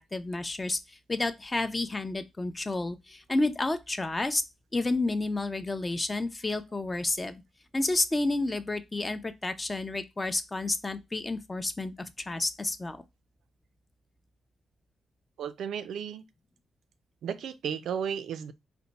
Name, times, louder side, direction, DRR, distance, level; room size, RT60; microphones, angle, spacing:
voice 1, 0.0-4.4 4.7-7.4 7.7-13.0, left 2 dB, 20° left, 0.5 m, -30 dB
voice 2, 15.4-16.2 17.2-18.5, right 8 dB, 85° right, 0.4 m, -34 dB
4.3 x 2.2 x 3.9 m
cardioid pair, 115°, 0 cm